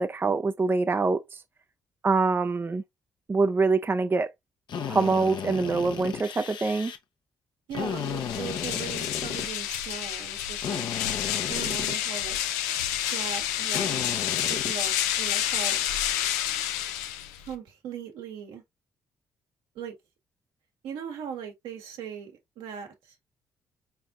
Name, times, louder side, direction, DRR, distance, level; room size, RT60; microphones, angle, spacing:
voice 1, 0.0-1.4 2.0-2.8 3.3-4.3 4.9-6.9, right 4 dB, 25° right, 0.5 m, -25 dB
Drill, 4.7-7.0 7.7-9.9 10.6-12.5 13.7-15.1, left 7 dB, 60° left, 0.8 m, -35 dB
voice 2, 7.7-10.8 11.5-12.4 13.1-14.0 14.5-15.8 17.5-18.6 19.7-19.9 20.8-22.9, right 7 dB, 75° right, 1.4 m, -39 dB
sound 1, 7.9-17.5, left 11 dB, 90° left, 0.4 m, -29 dB
4.5 x 3.5 x 2.4 m
hypercardioid pair, 50°, 9 cm